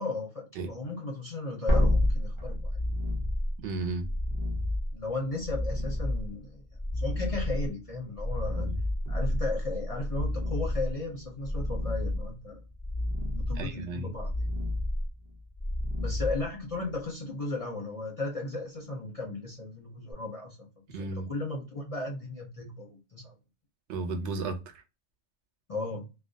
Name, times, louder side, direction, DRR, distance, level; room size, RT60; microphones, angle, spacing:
voice 1, 0.0-2.8 4.9-6.6 6.9-8.7 9.1-12.6 13.3-14.5 16.0-20.6 20.9-23.3 25.7-26.0, left 2 dB, 45° left, 0.5 m, -35 dB
sound 1, 1.7-17.0 20.1-20.2, left 1 dB, 25° right, 0.5 m, -30 dB
voice 2, 3.6-4.1 8.6-8.8 13.6-14.1 20.9-21.3 23.9-24.8, right 3 dB, 80° right, 0.9 m, -34 dB
2.3 x 2.2 x 2.6 m
omnidirectional pair, 1.2 m